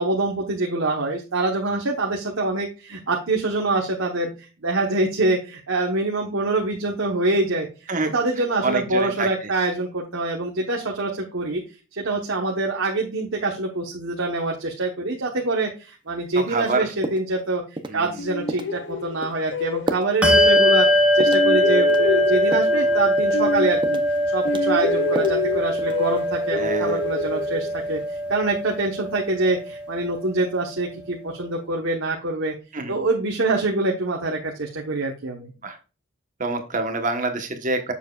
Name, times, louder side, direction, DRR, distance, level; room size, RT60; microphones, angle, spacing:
voice 1, 0.0-11.6 11.9-17.6 17.9-24.0 24.3-32.5 32.9-35.5, right 2 dB, 70° right, 0 dB, 1.1 m, -25 dB
voice 2, 8.6-9.3 16.5-16.9 17.9-18.1 26.6-27.0 32.7-32.9 35.6-35.8 36.4-37.9, right 3 dB, 40° right, 6 dB, 1.2 m, -26 dB
sound 1, 16.6-16.7 17.0-17.4 17.8-18.0 18.5-18.7 19.2-19.4 19.9-20.1 20.6-20.7 21.2-21.5 21.9-22.8 23.2-23.4 23.8-24.2 24.5-25.4 25.8-26.2, right 2 dB, 25° right, 0.6 m, -32 dB
sound 2, 18.2-20.9 21.2-24.2 24.4-28.0, left 3 dB, 55° left, 0.5 m, -28 dB
Bell, 20.2-30.2, equal, 5° right, 1.5 m, -21 dB
7.3 x 6.9 x 2.4 m, 0.32 s
head